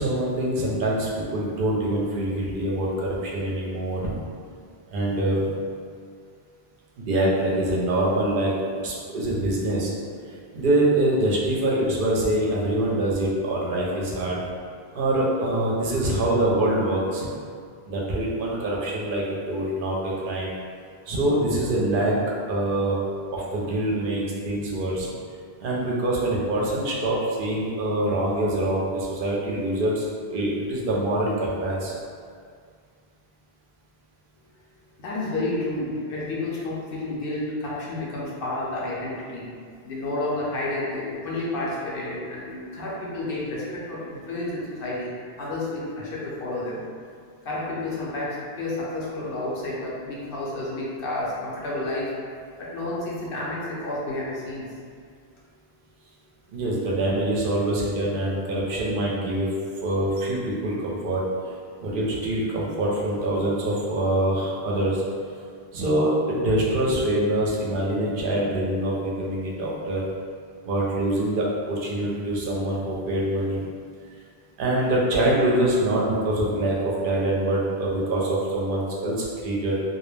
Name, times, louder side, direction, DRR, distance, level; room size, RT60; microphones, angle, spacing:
voice 1, 0.0-4.1 4.9-5.5 7.0-8.5 8.8-9.9 10.5-14.4 14.9-17.3 17.9-20.5 21.1-22.2 22.5-23.0 23.3-25.1 25.6-31.9 56.5-59.5 59.8-61.2 61.8-65.0 65.7-70.0 70.6-73.6 74.6-79.8, right 1 dB, 65° right, -4 dB, 0.7 m, -24 dB
voice 2, 35.0-39.5 39.8-46.8 47.4-52.1 52.6-54.7, left 2 dB, 65° left, -6 dB, 0.7 m, -30 dB
2.3 x 2.0 x 3.1 m, 2.1 s
omnidirectional pair, 1.1 m